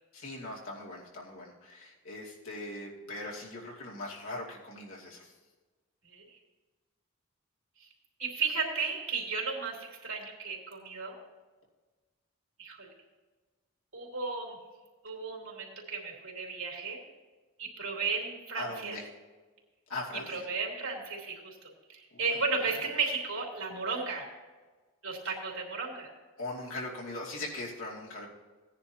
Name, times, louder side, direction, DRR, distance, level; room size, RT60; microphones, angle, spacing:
voice 1, 0.1-5.3 18.5-19.1 19.9-20.5 22.1-22.4 26.4-28.3, left 2 dB, 75° left, -4 dB, 2.5 m, -40 dB
voice 2, 8.2-11.2 12.6-12.9 13.9-14.6 15.0-17.0 17.6-18.9 20.3-21.5 21.9-24.2 25.0-26.1, right 4 dB, 75° right, -2 dB, 3.1 m, -34 dB
17.0 x 10.0 x 2.9 m, 1.3 s
head